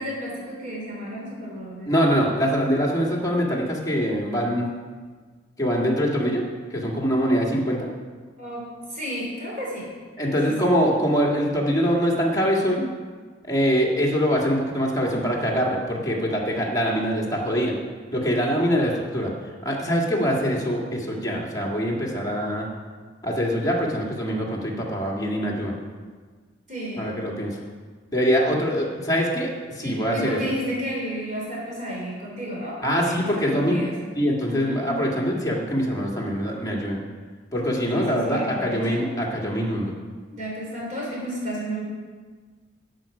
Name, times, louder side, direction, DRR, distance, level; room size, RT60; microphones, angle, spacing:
voice 1, 0.0-1.9 8.4-8.6 8.9-9.9 10.2-10.7 26.7-27.1 29.8-33.9 34.4-34.8 37.9-39.1 40.3-41.8, equal, 40° right, -4 dB, 3.3 m, -32 dB
voice 2, 1.9-4.7 5.6-6.4 6.7-7.8 10.2-12.9 13.5-17.7 18.1-19.3 19.6-22.7 23.2-25.7 27.0-27.6 28.1-29.5 29.8-30.4 32.8-33.9 34.1-37.0 37.5-39.9, equal, 20° left, -3 dB, 1.9 m, -23 dB
12.0 x 7.9 x 4.9 m, 1.5 s
head